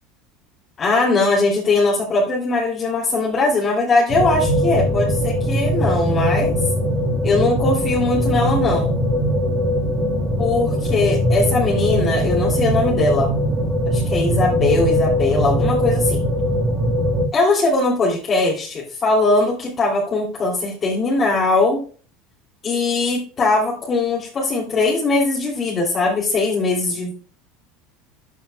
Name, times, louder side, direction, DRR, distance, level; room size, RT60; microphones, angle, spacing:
voice 1, 0.8-6.5 7.2-9.0 10.4-13.3 13.9-16.2 17.3-21.8 22.6-27.1, left 3 dB, 30° left, -5 dB, 3.0 m, -20 dB
sound 1, 4.1-17.3, equal, 25° right, 1.8 m, -20 dB
13.0 x 5.6 x 2.3 m, 0.38 s
figure-of-eight pair, 70°, 0 cm